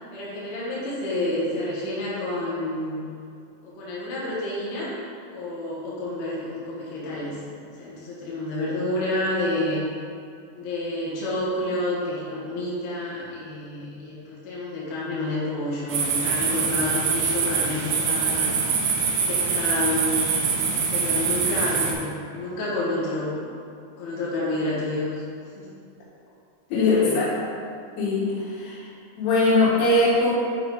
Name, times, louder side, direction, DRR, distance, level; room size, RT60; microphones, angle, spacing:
voice 1, 0.1-3.1 3.6-4.9 5.3-7.4 7.8-9.8 10.5-18.5 19.3-20.1 20.9-23.4 24.0-25.1 25.6-25.7 26.7-27.1, left 1 dB, 65° left, -7 dB, 3.1 m, -29 dB
sound 1, 15.9-21.9, right 5 dB, 80° right, 2.4 m, -24 dB
voice 2, 26.7-27.3 28.0-28.8 29.2-30.3, left 2 dB, 85° left, -8 dB, 4.1 m, -21 dB
8.5 x 4.4 x 3.9 m, 2.4 s
omnidirectional pair, 5.5 m